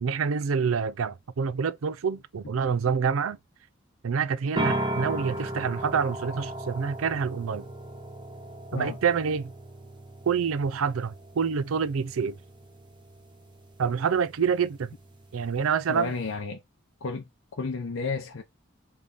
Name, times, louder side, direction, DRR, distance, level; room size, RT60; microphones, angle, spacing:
voice 1, 0.0-3.4 4.0-7.7 8.7-9.5 10.3-12.4 13.8-14.9 15.3-16.1, right 6 dB, 85° right, 0.4 m, -27 dB
sound 1, 4.6-16.3, right 1 dB, 20° right, 0.9 m, -37 dB
voice 2, 15.9-16.6 17.0-18.4, left 4 dB, 75° left, 0.7 m, -32 dB
3.5 x 3.3 x 3.9 m
head